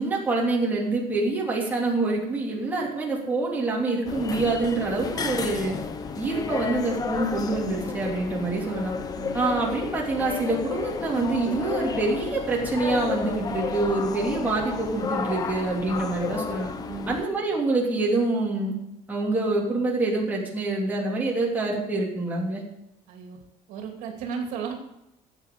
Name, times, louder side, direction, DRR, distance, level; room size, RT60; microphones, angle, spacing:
voice 1, 0.0-5.8 6.1-8.9 9.3-16.7 17.1-18.7 19.1-22.6, right 3 dB, 10° right, -3 dB, 3.1 m, -26 dB
sound 1, 4.0-17.3, left 6 dB, 30° left, 0.8 m, -32 dB
voice 2, 9.1-9.5 16.9-17.2 23.1-23.4 23.7-24.7, right 6 dB, 70° right, 2 dB, 2.6 m, -35 dB
12.5 x 8.4 x 6.7 m, 0.86 s
cardioid pair, 155°, 14 cm